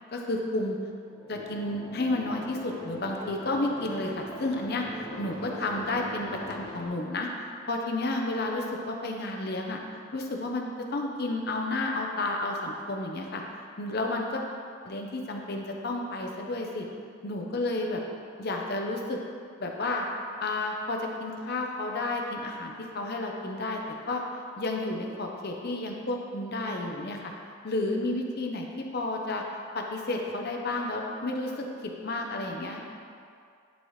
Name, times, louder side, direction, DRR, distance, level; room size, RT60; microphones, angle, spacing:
voice 1, 0.1-0.8 1.3-4.8 5.2-7.3 7.7-9.8 10.1-13.4 13.8-14.4 14.8-16.9 17.2-18.0 18.4-19.2 19.6-20.0 20.4-23.8 24.1-24.2 24.6-27.3 27.6-29.4 29.7-32.8, left 2 dB, 50° left, 1 dB, 0.7 m, -31 dB
sound 1, 1.1-6.9, left 1 dB, 20° left, 0.9 m, -42 dB
11.0 x 4.2 x 3.2 m, 2.3 s
head